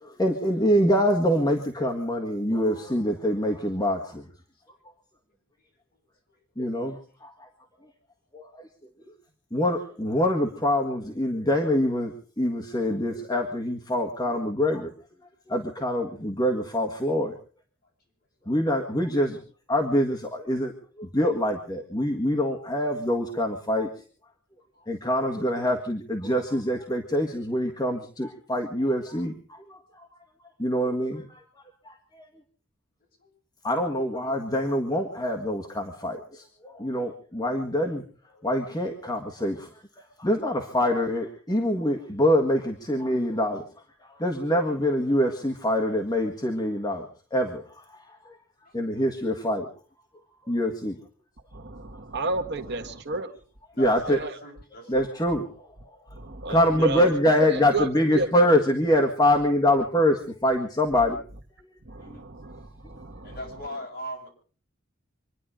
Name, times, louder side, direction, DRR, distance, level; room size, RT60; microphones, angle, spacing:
voice 1, 0.0-4.2 6.6-7.5 8.3-8.7 9.5-14.9 15.5-17.4 18.5-19.4 19.7-20.7 21.0-23.9 24.9-30.1 30.6-31.4 31.9-32.0 33.6-38.0 38.4-39.7 40.2-43.7 44.0-47.1 47.3-48.4 48.7-49.7 50.5-51.0 53.8-54.2 54.9-55.7 56.5-61.2 62.1-62.2, left 1 dB, 20° left, 2 dB, 1.7 m, -25 dB
voice 2, 48.7-49.1 49.4-49.5 52.7-52.8 53.7-55.1 62.0-62.3 63.2-64.3, equal, 45° left, 1 dB, 7.0 m, -41 dB
voice 3, 51.5-53.4 54.1-54.3 56.1-57.1 57.7-58.3 61.9-63.4, right 3 dB, 55° right, 6 dB, 1.5 m, -32 dB
26.0 x 11.0 x 5.0 m, 0.42 s
head